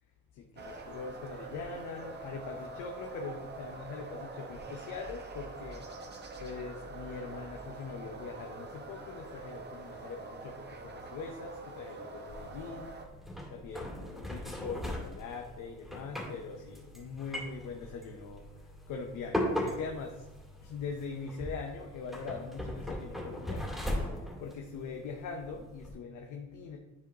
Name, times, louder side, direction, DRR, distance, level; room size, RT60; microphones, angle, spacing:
voice 1, 0.3-6.1 6.4-12.9 13.5-20.2 20.6-26.8, left 5 dB, 80° left, 2 dB, 0.9 m, -42 dB
sound 1, 0.6-13.0, right 3 dB, 35° right, 0.9 m, -45 dB
sound 2, 12.3-25.9, left 1 dB, ahead, 2.2 m, -39 dB
10.5 x 4.6 x 2.9 m, 1.1 s
cardioid pair, 90°, 30 cm